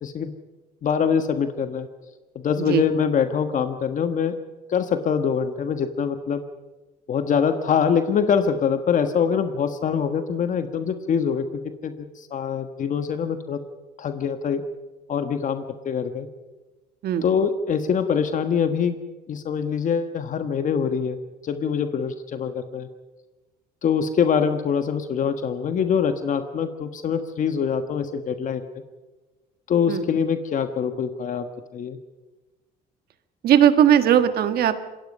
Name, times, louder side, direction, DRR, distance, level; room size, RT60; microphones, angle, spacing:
voice 1, 0.0-0.3 0.8-1.9 2.3-4.4 4.7-6.4 7.1-11.5 11.8-13.6 14.0-14.6 15.1-16.3 17.2-19.0 19.3-21.2 21.4-22.9 23.8-28.6 29.7-31.5 31.7-32.0, left 7 dB, 50° left, 8 dB, 1.4 m, -24 dB
voice 2, 33.4-34.8, right 10 dB, 65° right, 10 dB, 1.7 m, -18 dB
26.5 x 21.0 x 5.5 m, 1.2 s
cardioid pair, 110°, 17 cm